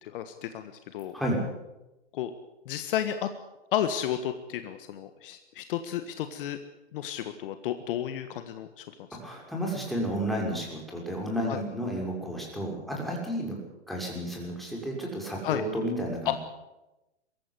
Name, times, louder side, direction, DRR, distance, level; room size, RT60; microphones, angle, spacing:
voice 1, 0.0-1.1 2.1-2.3 2.6-3.3 3.7-6.6 6.9-8.8 9.1-9.2 11.5-11.6 15.4-15.6 16.2-16.3, left 11 dB, 50° left, 9 dB, 1.6 m, -32 dB
voice 2, 9.1-13.6 13.9-16.3, equal, ahead, -2 dB, 6.4 m, -32 dB
23.0 x 14.0 x 9.7 m, 0.98 s
hypercardioid pair, 135°, 35 cm